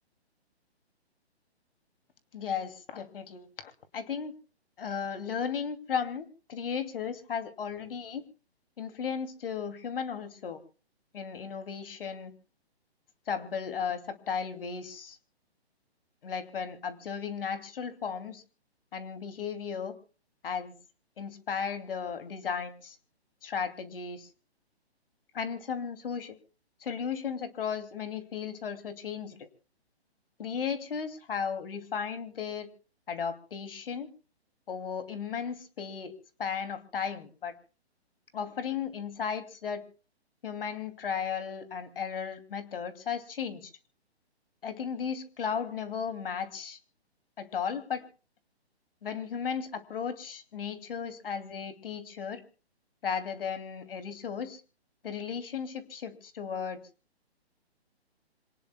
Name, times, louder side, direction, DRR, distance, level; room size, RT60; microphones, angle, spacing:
voice 1, 2.3-4.3 4.8-8.2 8.8-10.6 11.1-12.3 13.3-15.2 16.2-18.4 18.9-20.0 20.4-20.7 21.2-23.0 23.4-24.3 25.3-26.4 26.8-29.5 30.4-32.7 33.1-34.1 34.7-36.1 36.4-37.5 38.3-39.8 40.4-43.7 44.6-46.8 47.4-48.0 49.0-52.4 53.0-54.6 55.0-56.8, left 7 dB, 55° left, 10 dB, 2.7 m, -35 dB
27.0 x 18.5 x 2.3 m, 0.36 s
hypercardioid pair, 150°, 33 cm